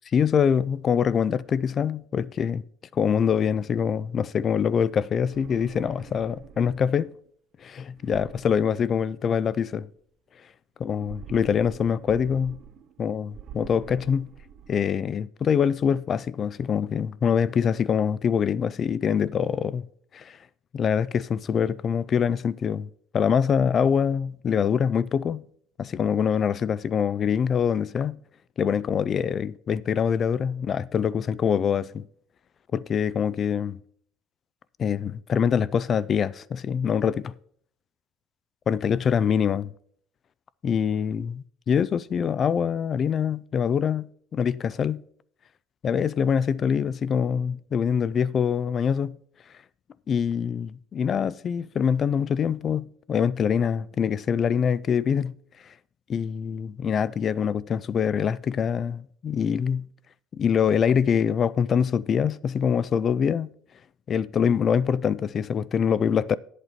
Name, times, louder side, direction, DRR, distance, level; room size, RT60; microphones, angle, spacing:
voice 1, 0.1-2.6 2.9-7.1 7.6-9.9 10.8-12.6 13.0-14.3 14.7-19.8 20.1-20.4 20.7-22.9 23.1-25.4 25.8-28.2 28.6-32.0 32.7-33.8 34.8-37.3 38.7-39.7 40.6-44.1 44.3-45.0 45.8-49.2 50.1-55.3 56.1-59.9 60.3-63.5 64.1-66.4, left 7 dB, 35° left, 0.3 m, -24 dB
sound 1, 5.2-7.1 8.0-9.5 10.8-13.0 13.3-15.0, right 8 dB, 45° right, 0.6 m, -46 dB
10.5 x 8.1 x 4.2 m
cardioid pair, 140°, 0 cm